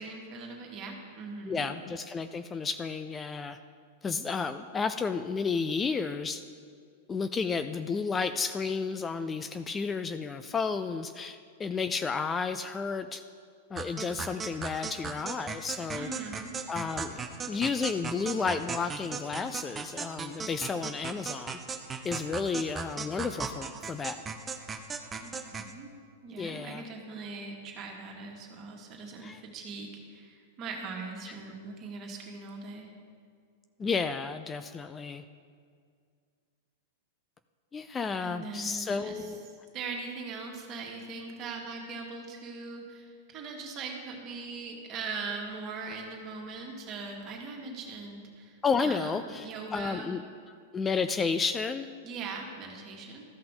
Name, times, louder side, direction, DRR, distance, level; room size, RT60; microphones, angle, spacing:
voice 1, 0.0-1.7 15.9-16.6 25.2-25.9 26.2-32.9 38.2-39.3 39.7-50.1 52.0-53.2, right 4 dB, 40° right, 0 dB, 1.9 m, -40 dB
voice 2, 1.5-3.6 4.0-6.4 7.1-13.2 13.7-16.1 16.7-21.6 22.0-24.2 26.4-26.8 29.2-29.4 33.8-35.2 37.7-39.4 48.6-50.2 50.7-51.9, left 5 dB, 20° left, 10 dB, 0.3 m, -32 dB
sound 1, 13.8-25.7, right 5 dB, 20° right, 0.7 m, -37 dB
14.0 x 5.7 x 3.8 m, 2.2 s
hypercardioid pair, 105°, 0 cm